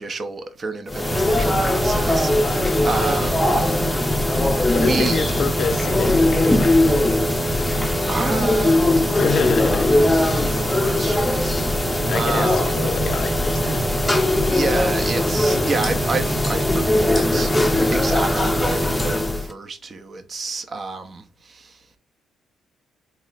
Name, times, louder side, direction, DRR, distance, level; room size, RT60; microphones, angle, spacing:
voice 1, 0.0-3.7 4.7-5.2 8.1-9.4 10.1-11.8 12.1-12.7 14.5-21.8, right 3 dB, 40° right, 0.6 m, -29 dB
sound 1, 0.9-19.5, left 1 dB, 10° left, 0.6 m, -20 dB
voice 2, 4.7-7.0 9.1-9.9 12.1-13.9, left 5 dB, 65° left, 0.5 m, -27 dB
4.1 x 2.0 x 3.9 m
cardioid pair, 90°, 0 cm